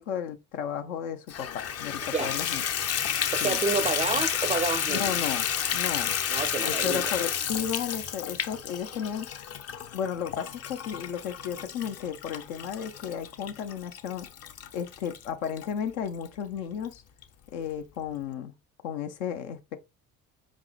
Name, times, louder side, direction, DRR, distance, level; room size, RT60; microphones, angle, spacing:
voice 1, 0.0-2.6 3.4-3.6 4.9-5.5 5.7-6.2 6.6-9.3 9.9-14.3 14.7-17.0 17.5-18.5 18.8-19.8, left 8 dB, 75° left, 0.7 m, -33 dB
Water tap faucet / Bathtub (filling or washing), 1.3-15.7 16.2-16.3 16.8-16.9 17.2-17.3, left 9 dB, 40° left, 0.6 m, -31 dB
voice 2, 3.3-5.2 6.3-7.1, right 4 dB, 20° right, 0.4 m, -29 dB
4.9 x 3.6 x 2.3 m
hypercardioid pair, 55°, 41 cm